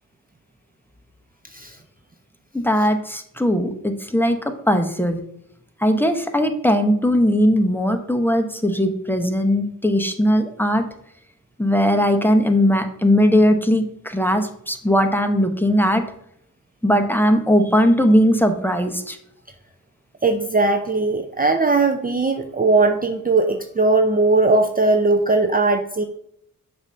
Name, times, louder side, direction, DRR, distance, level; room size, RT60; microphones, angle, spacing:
voice 1, 2.5-4.4 4.7-5.2 5.8-10.8 11.6-16.0 16.8-19.2, equal, 5° left, 6 dB, 0.8 m, -19 dB
voice 2, 20.2-26.0, right 3 dB, 25° right, 4 dB, 0.5 m, -19 dB
6.8 x 2.6 x 5.5 m, 0.72 s
cardioid pair, 50°, 35 cm